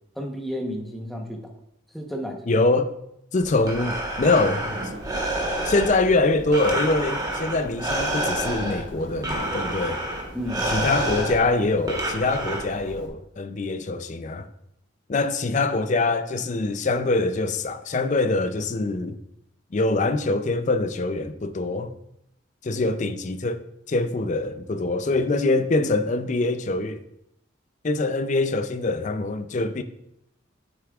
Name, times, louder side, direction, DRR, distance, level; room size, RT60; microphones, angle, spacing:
voice 1, 0.2-1.4 1.9-2.4 10.3-10.7, equal, ahead, 0.9 m, -31 dB
voice 2, 2.5-2.9 3.3-4.8 5.7-10.0 10.7-14.5 15.1-19.2 19.7-22.0 22.6-27.0 27.8-29.8, left 2 dB, 35° left, 0.4 m, -24 dB
Breathing, 3.4-13.1, right 1 dB, 20° right, 1.2 m, -29 dB
sound 1, 4.7-11.2, right 1 dB, 65° right, 1.4 m, -43 dB
9.7 x 7.9 x 2.4 m
head